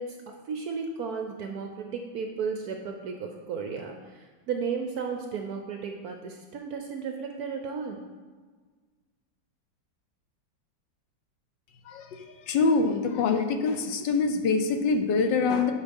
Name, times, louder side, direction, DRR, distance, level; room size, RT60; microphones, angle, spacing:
voice 1, 0.0-8.0, right 5 dB, 70° right, 4 dB, 0.9 m, -34 dB
voice 2, 12.5-15.7, left 4 dB, 70° left, 6 dB, 1.3 m, -24 dB
10.0 x 4.6 x 5.2 m, 1.5 s
omnidirectional pair, 2.1 m